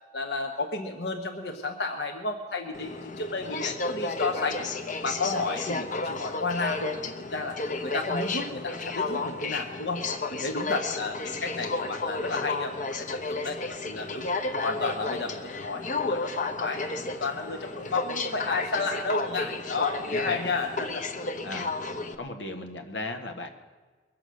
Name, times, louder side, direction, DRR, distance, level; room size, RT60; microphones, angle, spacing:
voice 1, 0.1-4.7 5.0-7.6 7.8-14.3 14.6-21.0, left 3 dB, 65° left, 3 dB, 1.1 m, -32 dB
Aircraft, 2.7-22.2, left 3 dB, 45° left, 1.0 m, -32 dB
voice 2, 20.1-20.6 21.4-21.7 22.2-23.5, left 2 dB, 90° left, 5 dB, 1.5 m, -36 dB
22.5 x 7.6 x 6.4 m, 1.4 s
head